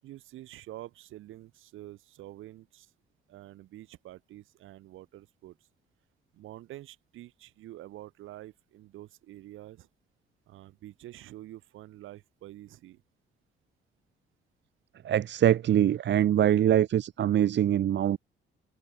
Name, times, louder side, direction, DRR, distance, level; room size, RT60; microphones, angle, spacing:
voice 1, 0.0-2.9 3.3-5.6 6.3-9.9 10.5-13.0, right 15 dB, 85° right, 6.4 m, -47 dB
voice 2, 15.0-18.2, right 11 dB, 65° right, 1.5 m, -23 dB
cardioid pair, 90°, 20 cm